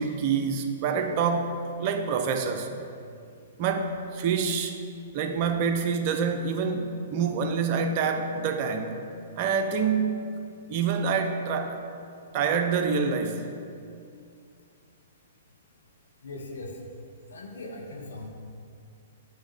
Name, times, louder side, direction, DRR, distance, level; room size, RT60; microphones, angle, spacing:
voice 1, 0.0-2.7 3.6-4.8 5.1-9.0 9.4-10.2 10.7-11.8 12.3-13.5, right 5 dB, 45° right, 6 dB, 0.6 m, -27 dB
voice 2, 16.2-16.7 17.3-18.3, left 2 dB, 75° left, 1 dB, 1.2 m, -39 dB
8.2 x 3.6 x 5.0 m, 2.4 s
figure-of-eight pair, 115°, 0 cm